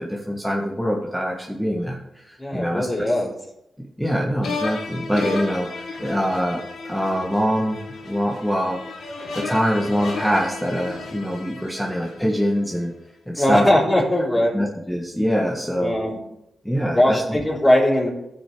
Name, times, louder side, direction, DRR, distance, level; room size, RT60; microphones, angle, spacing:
voice 1, 0.0-3.1 4.0-6.6 6.9-8.8 9.3-12.9 13.3-13.7 14.5-15.9 16.6-17.4, equal, ahead, -2 dB, 1.6 m, -24 dB
voice 2, 2.4-3.3 13.4-14.5 15.8-16.2 16.9-18.1, left 1 dB, 20° left, -8 dB, 4.2 m, -19 dB
sound 1, 4.4-12.6, left 3 dB, 80° left, 1.7 m, -33 dB
15.0 x 6.6 x 3.5 m, 0.86 s
cardioid pair, 55°, 0 cm